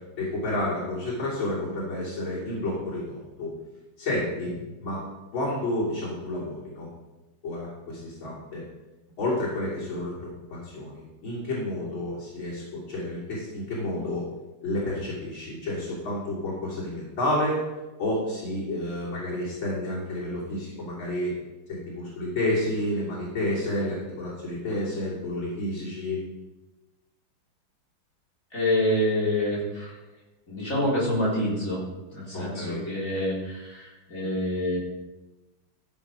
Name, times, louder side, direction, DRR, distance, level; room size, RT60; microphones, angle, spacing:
voice 1, 0.2-3.5 4.0-5.0 5.3-6.9 7.4-8.6 9.2-14.3 14.6-17.6 18.0-21.3 21.7-26.2 32.3-32.8, left 1 dB, 70° left, -8 dB, 4.0 m, -30 dB
voice 2, 28.5-29.9 30.5-31.8 32.1-34.8, left 1 dB, 40° left, -6 dB, 4.3 m, -27 dB
14.5 x 6.9 x 5.2 m, 1.1 s
omnidirectional pair, 2.3 m